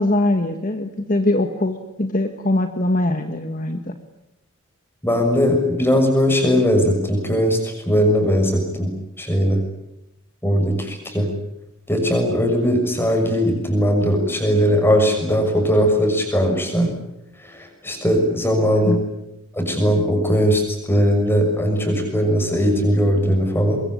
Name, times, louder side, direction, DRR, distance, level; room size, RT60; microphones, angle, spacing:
voice 1, 0.0-3.9 18.9-19.0, left 1 dB, 35° left, 7 dB, 1.5 m, -22 dB
voice 2, 5.0-8.9 9.2-9.6 10.4-11.3 11.9-16.9 17.4-19.0 19.5-23.8, equal, 10° left, 4 dB, 6.4 m, -19 dB
24.0 x 22.5 x 10.0 m, 0.86 s
head